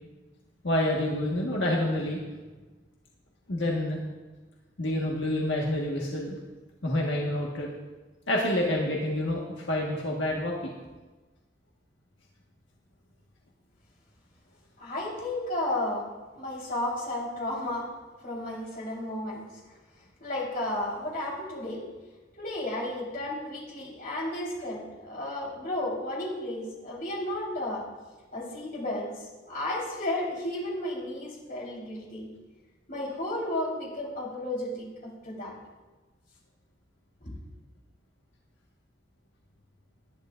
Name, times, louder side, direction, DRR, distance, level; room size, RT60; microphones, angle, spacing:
voice 1, 0.6-2.2 3.5-4.0 4.8-6.4 6.8-7.7 8.3-10.7, left 1 dB, 90° left, -2 dB, 1.6 m, -28 dB
voice 2, 14.8-16.1 16.4-17.9 18.2-19.4 20.2-21.9 22.4-27.8 28.3-29.1 29.5-32.3 32.9-35.5 37.2-37.3, left 1 dB, 50° left, -4 dB, 4.1 m, -33 dB
19.5 x 11.0 x 2.6 m, 1.2 s
head